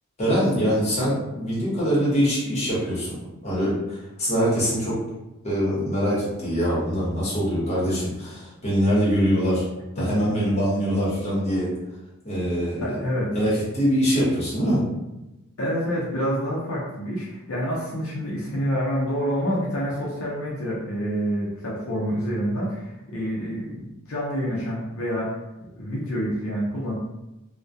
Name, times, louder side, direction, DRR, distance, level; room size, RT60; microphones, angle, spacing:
voice 1, 0.2-3.2 3.4-5.0 5.4-9.6 10.0-11.7 12.2-12.9 13.3-14.8, equal, 30° left, -7 dB, 0.9 m, -23 dB
voice 2, 12.8-13.3 15.6-25.4 25.8-26.9, equal, 70° left, -5 dB, 0.6 m, -27 dB
2.2 x 2.1 x 2.6 m, 0.98 s
head